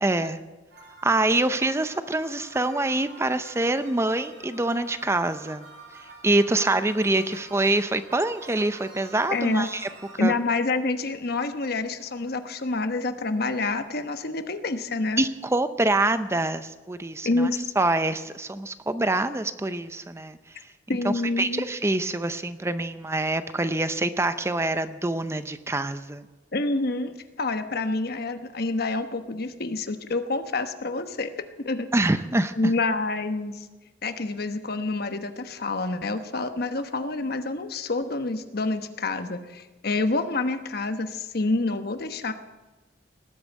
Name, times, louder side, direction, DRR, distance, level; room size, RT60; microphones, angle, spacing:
voice 1, 0.0-0.4 1.0-5.6 6.2-9.8 10.1-10.3 15.2-17.5 17.8-20.4 20.9-26.2 31.9-32.5, right 2 dB, 15° right, 11 dB, 0.6 m, -25 dB
sound 1, 0.7-10.2, right 3 dB, 60° right, 5.8 m, -48 dB
voice 2, 9.3-9.7 10.2-15.2 17.2-17.6 20.9-21.6 26.5-31.9 32.6-33.7 34.0-42.3, left 3 dB, 55° left, 9 dB, 1.1 m, -27 dB
18.5 x 8.9 x 8.2 m, 1.2 s
head